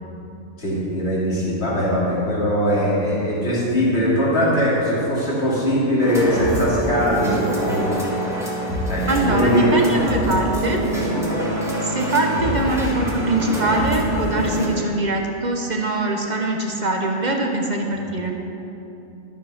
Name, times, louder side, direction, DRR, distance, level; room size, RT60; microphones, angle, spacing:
voice 1, 0.6-9.8 10.0-10.2 12.4-12.5, equal, 50° left, -7 dB, 2.8 m, -21 dB
sound 1, 6.0-14.7, right 1 dB, ahead, 1.9 m, -25 dB
voice 2, 9.1-10.8 11.8-18.3, right 2 dB, 40° right, 2 dB, 0.8 m, -22 dB
12.0 x 7.1 x 5.7 m, 2.9 s
omnidirectional pair, 1.5 m